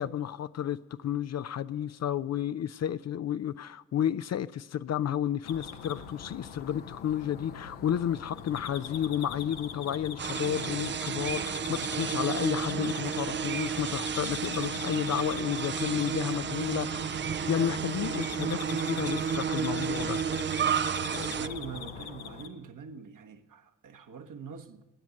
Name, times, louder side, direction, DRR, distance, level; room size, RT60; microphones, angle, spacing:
voice 1, 0.0-20.2, left 10 dB, 45° left, 0.5 m, -32 dB
sound 1, 5.4-22.5, left 6 dB, 80° left, 1.1 m, -42 dB
sound 2, 10.2-21.5, right 7 dB, 30° right, 0.5 m, -32 dB
voice 2, 21.4-24.8, right 5 dB, 55° right, 1.3 m, -43 dB
20.0 x 9.3 x 6.3 m
hypercardioid pair, 40°, 37 cm